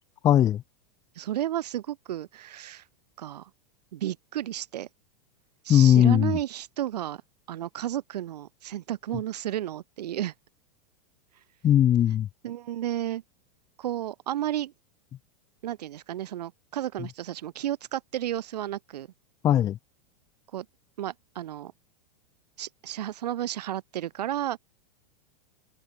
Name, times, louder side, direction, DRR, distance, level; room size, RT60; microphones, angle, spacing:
voice 1, 0.2-0.6 5.7-6.4 11.6-12.3 19.4-19.8, left 11 dB, 15° left, 0.4 m, -19 dB
voice 2, 1.2-2.8 3.2-3.5 3.9-4.9 5.6-7.2 7.5-10.3 12.4-13.2 13.8-14.7 15.6-19.1 20.5-20.7 21.0-21.7 22.6-24.6, right 12 dB, 85° right, 1.8 m, -32 dB
supercardioid pair, 155°, 20 cm